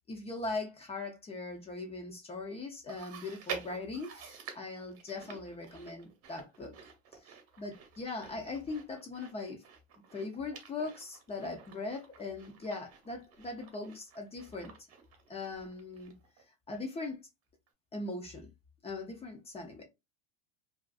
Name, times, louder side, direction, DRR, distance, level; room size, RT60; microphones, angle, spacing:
voice 1, 0.1-6.7 7.6-9.6 10.1-14.7 15.3-16.1 16.7-17.2 17.9-18.5 18.8-19.8, left 3 dB, 20° left, 0.5 m, -40 dB
Chewing mastication, 2.9-16.4 16.7-16.8 17.7-17.8, right 6 dB, 45° right, 0.9 m, -49 dB
2.4 x 2.4 x 2.3 m
supercardioid pair, 115°, 33 cm